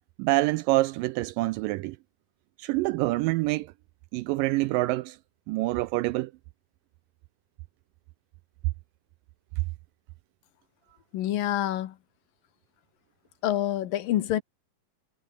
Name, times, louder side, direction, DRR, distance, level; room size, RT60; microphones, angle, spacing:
voice 1, 0.2-2.0 2.6-3.7 4.1-5.2 5.5-6.3, right 19 dB, 80° right, 2.0 m, -26 dB
voice 2, 11.1-11.9 13.4-14.4, left 12 dB, 70° left, 2.9 m, -27 dB
omnidirectional pair, 4.3 m